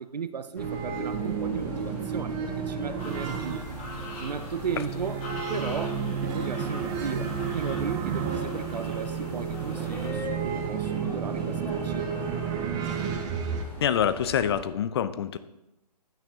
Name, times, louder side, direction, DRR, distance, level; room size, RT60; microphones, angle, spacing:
voice 1, 0.0-3.6 4.2-5.2 5.5-12.2, right 6 dB, 80° right, 12 dB, 0.7 m, -35 dB
sound 1, 0.5-14.6, left 1 dB, 10° left, 1.7 m, -41 dB
sound 2, 0.6-13.7, right 7 dB, 20° right, 0.6 m, -32 dB
sound 3, 3.0-10.1, left 3 dB, 25° left, 1.6 m, -44 dB
voice 2, 13.8-15.4, left 9 dB, 40° left, 13 dB, 0.4 m, -26 dB
9.0 x 8.8 x 2.4 m, 0.92 s
figure-of-eight pair, 135°, 21 cm